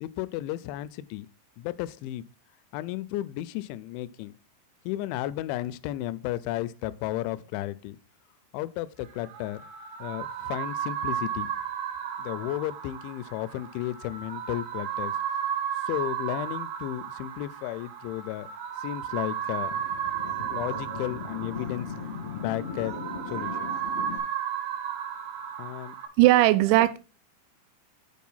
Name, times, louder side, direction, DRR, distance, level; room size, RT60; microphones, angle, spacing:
voice 1, 0.0-1.3 1.6-2.2 2.7-4.3 4.9-8.0 8.5-9.6 10.0-11.5 12.2-15.1 15.9-18.5 18.8-19.9 20.5-21.9 22.3-23.0 23.3-23.7 25.6-26.0, left 14 dB, 85° left, 2.9 m, -33 dB
sound 1, 9.1-26.1, right 9 dB, 65° right, 1.9 m, -34 dB
sound 2, 19.4-24.2, left 5 dB, 50° left, 0.7 m, -38 dB
voice 2, 26.2-27.0, right 16 dB, 85° right, 2.9 m, -18 dB
8.4 x 4.6 x 5.5 m
omnidirectional pair, 5.2 m